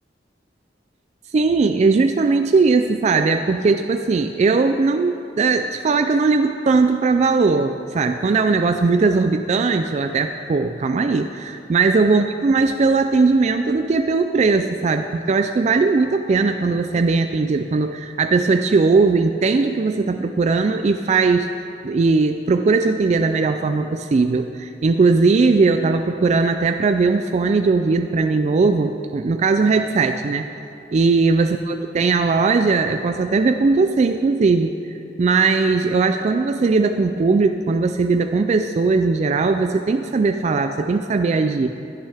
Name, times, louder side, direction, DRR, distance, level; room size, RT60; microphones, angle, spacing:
voice 1, 1.3-21.5 21.8-30.5 30.9-34.7 35.2-41.7, right 4 dB, 40° right, 7 dB, 0.3 m, -19 dB
16.0 x 12.0 x 3.4 m, 2.7 s
head